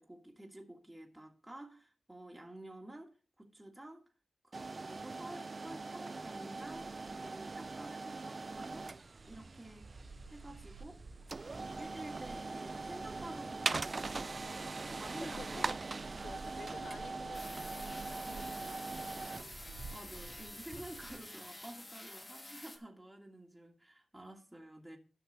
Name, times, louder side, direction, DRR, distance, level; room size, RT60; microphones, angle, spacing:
voice 1, 0.0-4.1 4.4-8.9 9.2-9.9 10.3-11.0 11.6-14.2 14.5-15.8 16.1-16.4 19.9-25.0, right 1 dB, 10° right, 1.7 m, -50 dB
sound 1, 4.5-21.4, right 3 dB, 45° right, 0.4 m, -42 dB
sound 2, 5.9-21.2, right 3 dB, 70° right, 2.5 m, -54 dB
voice 2, 15.1-15.7 16.2-19.4, left 5 dB, 80° left, 0.5 m, -53 dB
sound 3, 17.3-22.8, left 2 dB, 35° left, 1.6 m, -49 dB
12.0 x 5.8 x 4.0 m
cardioid pair, 55°, 0 cm